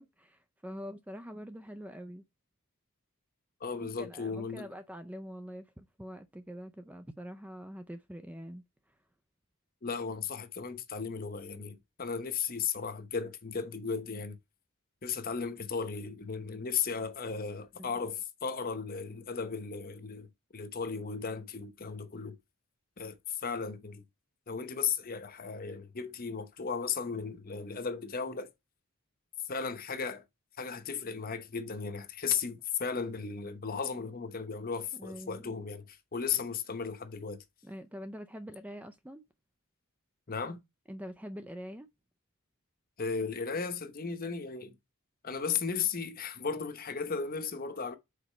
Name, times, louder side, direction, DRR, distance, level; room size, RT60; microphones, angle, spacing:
voice 1, 0.0-2.2 3.8-9.0 17.8-17.9 34.9-35.6 37.6-39.3 40.9-41.9, equal, 5° right, 0.4 m, -45 dB
voice 2, 3.6-4.7 9.8-14.4 15.0-22.4 23.0-24.0 24.5-28.5 29.5-30.2 30.6-37.4 40.3-40.6 43.0-44.8 45.2-48.0, left 6 dB, 40° left, 0.8 m, -35 dB
5.0 x 4.1 x 5.4 m
head